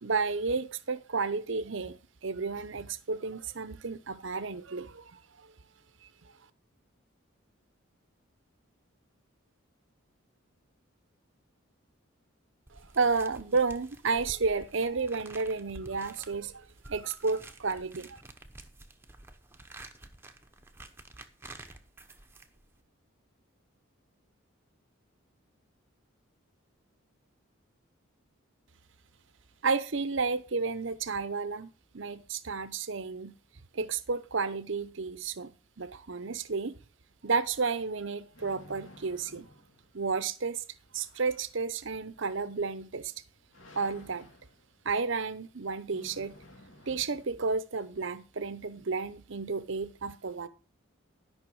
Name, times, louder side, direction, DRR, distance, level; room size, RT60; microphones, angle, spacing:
voice 1, 0.0-5.5 12.7-18.2 29.6-33.3 33.7-36.7 37.2-39.5 39.9-40.6 40.9-43.1 43.8-44.3 44.8-46.4 46.9-50.5, right 4 dB, 60° right, 0.8 m, -32 dB
sound 1, 12.7-22.8, right 2 dB, 10° right, 0.9 m, -51 dB
sound 2, 37.2-47.6, left 1 dB, 65° left, 2.2 m, -57 dB
12.5 x 5.8 x 6.2 m
head